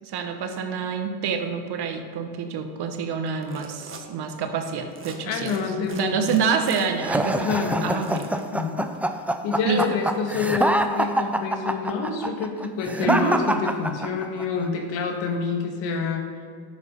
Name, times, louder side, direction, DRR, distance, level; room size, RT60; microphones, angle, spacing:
voice 1, 0.0-5.5 6.0-8.3 9.6-10.0 13.0-13.4, right 6 dB, 55° right, 6 dB, 1.4 m, -27 dB
sound 1, 3.3-4.1 4.8-5.2 5.5-8.4, right 4 dB, 25° right, 1.6 m, -43 dB
voice 2, 5.2-6.4 7.4-8.2 8.5-8.9 9.4-16.2, left 5 dB, 70° left, 3 dB, 1.8 m, -27 dB
sound 2, 7.0-14.4, right 1 dB, 5° right, 0.5 m, -25 dB
10.5 x 7.5 x 5.4 m, 2.3 s
supercardioid pair, 85°, 46 cm